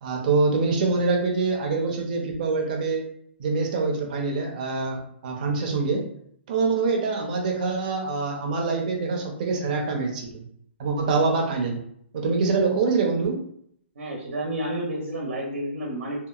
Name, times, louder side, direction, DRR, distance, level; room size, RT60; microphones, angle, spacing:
voice 1, 0.0-3.1 3.4-6.1 6.5-10.4 10.8-11.8 12.1-13.4, right 4 dB, 40° right, 1 dB, 0.6 m, -25 dB
voice 2, 13.9-16.3, right 1 dB, 80° right, -2 dB, 0.9 m, -30 dB
2.8 x 2.3 x 2.3 m, 0.67 s
hypercardioid pair, 165°, 7 cm